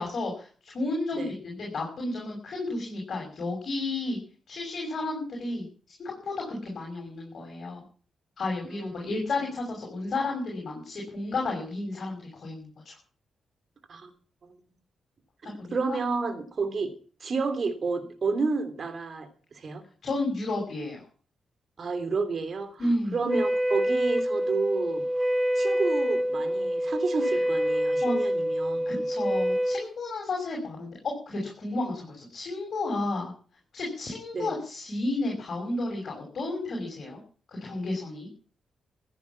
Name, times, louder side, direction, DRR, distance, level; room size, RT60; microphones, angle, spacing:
voice 1, 0.0-4.2 4.5-5.6 6.0-7.8 8.4-13.0 15.4-16.0 20.0-21.0 22.8-23.2 28.0-28.1 28.9-33.3 33.7-37.2 37.5-38.3, left 2 dB, 55° left, -1 dB, 6.4 m, -32 dB
voice 2, 8.6-9.1 13.9-14.1 15.4-16.9 17.2-19.3 19.6-19.8 21.8-25.0 25.6-29.0 34.3-34.5, right 4 dB, 50° right, 9 dB, 3.0 m, -30 dB
Wind instrument woodwind instrument, 23.2-29.9, equal, 15° right, 2.3 m, -26 dB
15.5 x 9.7 x 7.2 m, 0.42 s
cardioid pair, 85°, 0 cm